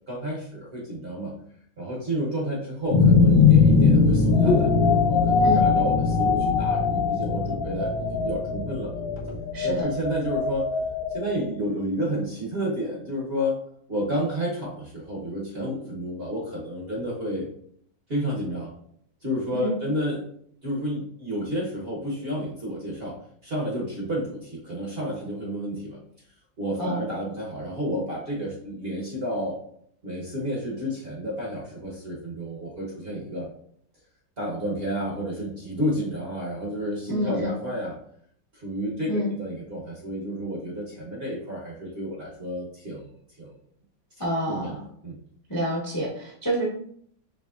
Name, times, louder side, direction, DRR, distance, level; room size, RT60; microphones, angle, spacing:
voice 1, 0.1-1.3 1.8-8.9 9.6-10.7 11.1-13.6 13.9-17.5 18.1-18.7 19.2-20.2 20.6-23.2 23.4-26.0 26.6-29.6 30.0-33.5 34.4-37.9 38.5-43.1 43.4-43.5 44.5-45.2, equal, 40° right, -3 dB, 1.0 m, -31 dB
sound 1, 2.9-9.5, left 4 dB, 90° left, 1.4 m, -20 dB
sound 2, 4.3-11.6, left 5 dB, 65° left, 0.9 m, -26 dB
voice 2, 9.5-9.8 19.5-19.7 26.8-27.0 37.1-37.5 39.1-39.3 44.2-44.8 45.5-46.7, equal, 20° left, -4 dB, 0.6 m, -28 dB
5.0 x 3.1 x 2.4 m, 0.64 s
omnidirectional pair, 1.9 m